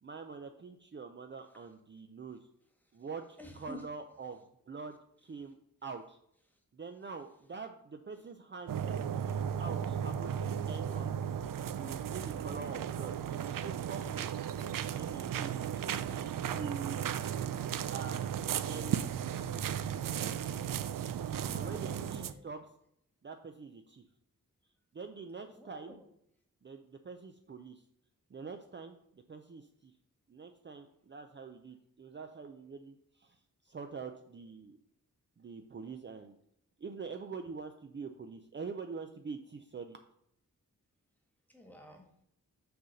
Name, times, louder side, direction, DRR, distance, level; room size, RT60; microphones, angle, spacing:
voice 1, 0.0-2.5 2.9-5.6 5.8-6.2 6.7-11.1 11.7-14.3 14.9-18.3 18.7-19.0 19.3-19.6 21.5-22.7 23.2-24.0 24.9-26.0 26.6-27.8 28.3-29.9 30.3-34.8 35.4-36.4 36.8-40.0, right 5 dB, 35° right, 5 dB, 0.5 m, -45 dB
voice 2, 3.4-3.9 6.5-6.6 15.3-15.7 21.0-22.5 25.4-26.1 41.5-42.1, left 1 dB, 5° left, 2 dB, 1.5 m, -52 dB
sound 1, 8.7-22.3, right 9 dB, 80° right, 0.5 m, -35 dB
6.9 x 3.9 x 6.4 m, 0.74 s
wide cardioid pair, 130°, 33 cm